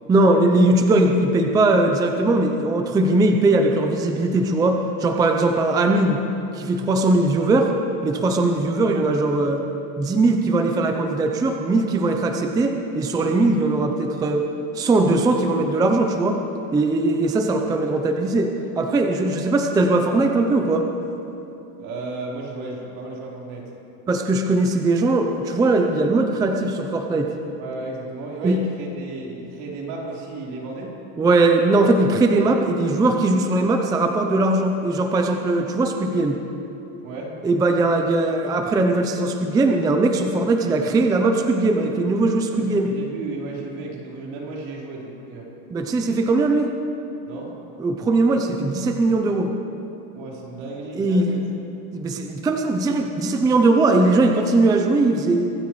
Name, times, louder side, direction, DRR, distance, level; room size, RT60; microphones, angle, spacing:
voice 1, 0.1-6.2 6.5-7.7 8.0-9.6 10.0-14.4 14.7-16.4 16.7-20.9 24.1-27.3 28.4-28.6 31.2-36.4 37.4-42.9 45.7-46.7 47.8-49.5 50.9-51.4 51.9-55.5, right 2 dB, 10° right, 4 dB, 0.4 m, -20 dB
voice 2, 21.8-23.7 27.6-30.9 37.0-37.3 42.5-45.5 46.0-46.1 47.3-47.5 50.1-51.4, right 3 dB, 65° right, -4 dB, 3.9 m, -34 dB
24.0 x 13.5 x 3.1 m, 2.9 s
cardioid pair, 155°, 40 cm